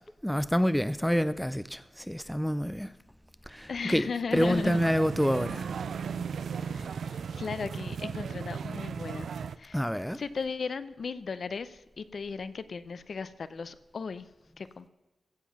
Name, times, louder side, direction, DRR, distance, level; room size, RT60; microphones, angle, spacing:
voice 1, 0.2-2.9 3.5-5.7 9.7-10.2, equal, ahead, 0.3 m, -28 dB
voice 2, 3.7-4.8 6.4-9.8 10.1-14.3 14.6-14.9, left 5 dB, 55° left, 0.7 m, -37 dB
sound 1, 4.3-9.6, right 6 dB, 80° right, 0.4 m, -36 dB
15.5 x 7.7 x 6.0 m
wide cardioid pair, 150°, 0 cm